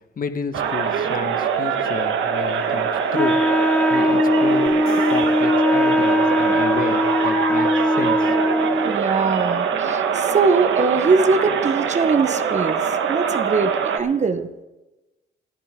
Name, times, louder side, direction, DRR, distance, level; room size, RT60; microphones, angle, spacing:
voice 1, 0.2-3.4 3.9-4.7 5.1-8.3, left 5 dB, 45° left, 8 dB, 1.4 m, -31 dB
sound 1, 0.5-14.0, right 7 dB, 75° right, 1.4 m, -23 dB
Wind instrument woodwind instrument, 3.1-9.0, left 1 dB, 5° left, 0.5 m, -20 dB
sound 2, 4.7-6.6, left 7 dB, 85° left, 2.9 m, -43 dB
voice 2, 8.8-12.8 13.1-14.5, right 4 dB, 35° right, 10 dB, 1.1 m, -21 dB
27.0 x 10.5 x 3.7 m, 1.1 s
cardioid pair, 90°, 20 cm